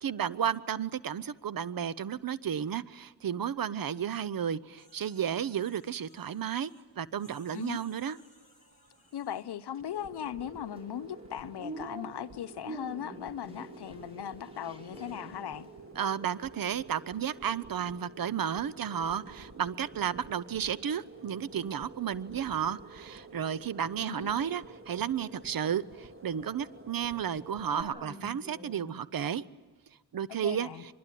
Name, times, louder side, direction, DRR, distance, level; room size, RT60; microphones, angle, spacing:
voice 1, 0.0-6.7 7.0-8.2 16.0-29.4 30.1-30.7, right 8 dB, 55° right, 0.8 m, -33 dB
sound 1, 4.8-6.8 7.2-9.5, left 2 dB, 15° left, 7.7 m, -63 dB
sound 2, 8.1-27.8, right 3 dB, 30° right, 2.4 m, -51 dB
voice 2, 9.1-15.7 24.1-24.3 30.3-30.9, left 10 dB, 70° left, 0.9 m, -38 dB
sound 3, 10.6-17.8 18.2-19.2 19.4-29.0, right 1 dB, 15° right, 6.3 m, -50 dB
24.0 x 21.5 x 9.2 m
cardioid pair, 75°, 41 cm